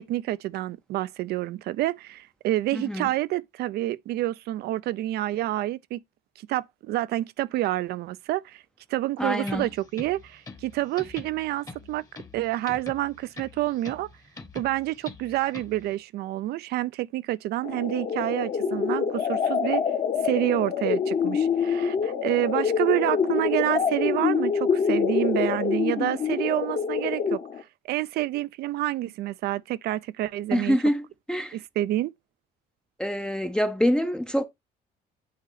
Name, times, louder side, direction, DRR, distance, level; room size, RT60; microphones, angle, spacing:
voice 1, 0.0-6.0 6.4-8.6 8.9-12.1 12.3-14.1 14.5-19.9 20.2-30.8 31.5-32.1, right 15 dB, 70° right, 0.5 m, -28 dB
voice 2, 2.7-3.1 9.2-9.7 30.5-31.6 33.0-34.4, equal, 5° left, 0.5 m, -25 dB
sound 1, 9.4-15.9, left 3 dB, 20° left, 1.0 m, -45 dB
sound 2, 17.6-27.6, left 6 dB, 50° left, 1.1 m, -26 dB
8.5 x 2.9 x 4.0 m
cardioid pair, 110°, 17 cm